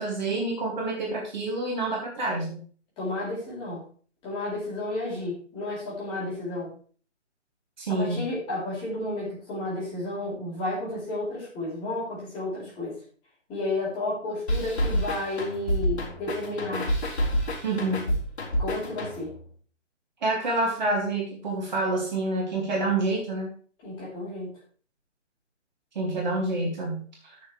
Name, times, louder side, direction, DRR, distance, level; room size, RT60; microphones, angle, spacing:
voice 1, 0.0-2.6 7.8-8.2 17.6-18.2 20.2-23.5 25.9-27.4, right 2 dB, 40° right, -1 dB, 2.5 m, -28 dB
voice 2, 3.0-3.8 4.2-6.7 7.9-12.9 13.5-16.9 18.6-19.3 23.8-24.5, left 2 dB, 15° left, -7 dB, 4.7 m, -32 dB
sound 1, 14.5-19.4, equal, 60° left, 3.9 m, -28 dB
15.0 x 6.6 x 3.4 m, 0.43 s
figure-of-eight pair, 150°, 37 cm